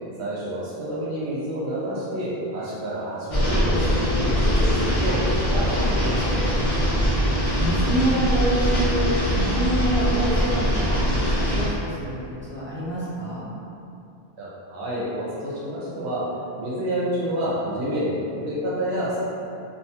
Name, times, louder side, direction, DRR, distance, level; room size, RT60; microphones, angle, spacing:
voice 1, 0.2-6.5 14.4-16.2 16.6-19.2, equal, 80° right, -8 dB, 0.9 m, -28 dB
sound 1, 3.3-11.7, equal, 50° left, 0.7 m, -22 dB
voice 2, 6.6-13.5, right 1 dB, 15° right, -11 dB, 0.4 m, -27 dB
2.6 x 2.2 x 2.8 m, 2.6 s
omnidirectional pair, 1.1 m